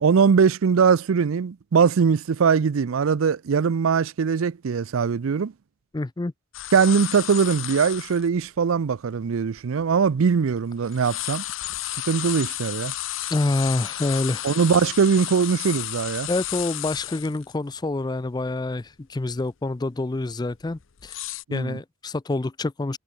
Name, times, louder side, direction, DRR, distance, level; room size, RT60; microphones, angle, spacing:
voice 1, 0.0-5.5 6.7-11.4 12.1-12.9 14.4-16.3 21.5-21.8, right 6 dB, 85° right, 0.5 m, -21 dB
voice 2, 5.9-6.3 13.3-14.5 16.3-21.2 21.5-23.0, left 2 dB, 20° left, 0.4 m, -27 dB
sound 1, 6.5-8.3 8.9-9.0 9.6-10.6 10.8-17.5 17.9-18.0 18.4-18.8 19.2-19.4 20.1-21.4, left 15 dB, 70° left, 0.8 m, -33 dB
head